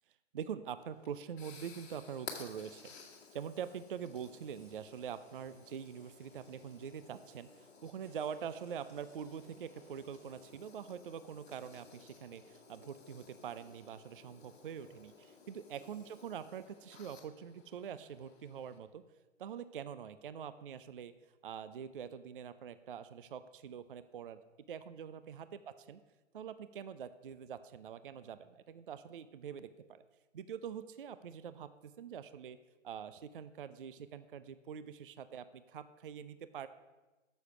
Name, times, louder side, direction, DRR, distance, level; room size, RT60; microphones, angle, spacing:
voice 1, 0.3-2.9 3.3-19.0 19.4-21.1 21.4-24.4 24.7-26.0 26.3-30.0 30.3-32.6 32.8-36.7, right 8 dB, 45° right, 13 dB, 0.4 m, -45 dB
sound 1, 0.8-18.8, left 5 dB, 55° left, 2.0 m, -56 dB
sound 2, 1.6-3.2 4.6-7.0 8.0-10.5, right 2 dB, 15° right, 1.6 m, -71 dB
9.5 x 7.1 x 6.0 m, 1.2 s
hypercardioid pair, 160°, 38 cm